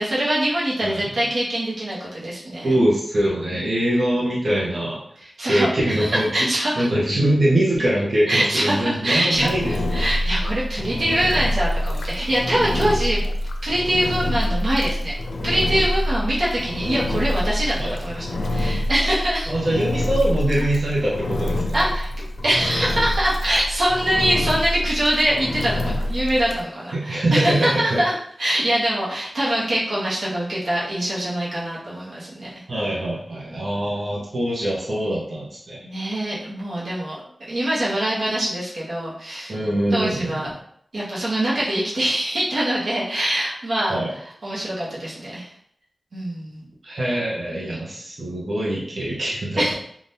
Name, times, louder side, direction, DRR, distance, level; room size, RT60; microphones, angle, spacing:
voice 1, 0.0-2.7 3.5-3.7 5.2-6.9 8.3-13.2 13.6-15.1 15.4-19.5 21.7-22.1 22.4-28.1 28.4-32.5 35.8-37.2 37.5-39.5 39.9-40.5 40.9-44.0 44.4-45.5 46.1-46.6 49.6-49.7, right 1 dB, 75° right, -6 dB, 1.0 m, -24 dB
voice 2, 2.6-5.0 5.5-6.5 6.8-9.7 17.8-18.0 19.5-21.8 26.9-28.0 32.7-35.8 39.5-40.5 43.9-44.1 46.8-49.7, right 1 dB, 50° right, -6 dB, 0.9 m, -23 dB
Engine, 9.3-26.6, left 1 dB, 90° left, 0.4 m, -26 dB
3.4 x 2.4 x 2.7 m, 0.66 s
wide cardioid pair, 110°, 0 cm